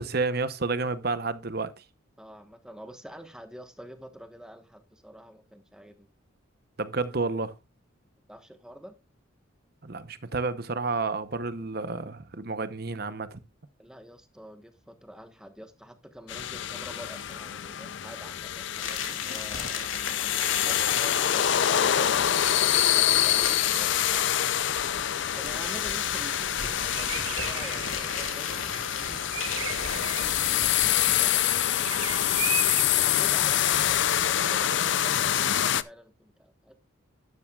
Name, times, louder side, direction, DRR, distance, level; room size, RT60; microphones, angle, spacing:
voice 1, 0.0-1.8 6.8-7.5 9.8-13.4, right 3 dB, 50° right, 0.9 m, -30 dB
voice 2, 2.2-6.1 8.3-9.0 13.8-19.9 20.6-24.6 25.3-32.6 33.0-36.8, equal, 5° right, 1.2 m, -48 dB
sound 1, 16.3-35.8, left 11 dB, 60° left, 0.5 m, -26 dB
sound 2, 18.7-31.3, left 6 dB, 75° left, 2.6 m, -36 dB
Bird vocalization bird call bird song, 25.5-32.8, right 9 dB, 85° right, 0.9 m, -39 dB
12.0 x 10.5 x 2.4 m
head